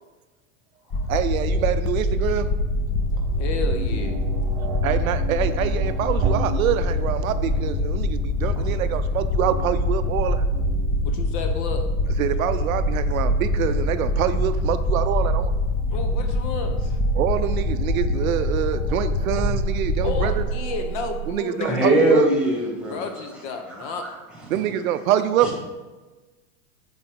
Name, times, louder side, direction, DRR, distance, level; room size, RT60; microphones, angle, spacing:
sound 1, 0.9-20.5, left 2 dB, 30° left, 0.8 m, -24 dB
voice 1, 1.1-2.5 4.8-10.4 12.2-15.5 17.1-20.4 21.3-22.3 24.5-25.6, right 10 dB, 80° right, 11 dB, 0.5 m, -25 dB
sound 2, 2.0-21.3, right 7 dB, 50° right, 0.8 m, -36 dB
voice 2, 3.4-4.2 11.1-11.8 15.9-17.0 20.0-21.9 22.9-24.0, left 4 dB, 55° left, 5 dB, 0.9 m, -31 dB
voice 3, 21.6-23.0 23.7-24.1 25.4-25.6, right 1 dB, ahead, -2 dB, 1.9 m, -21 dB
7.1 x 3.9 x 3.7 m, 1.2 s
hypercardioid pair, 105°, 41 cm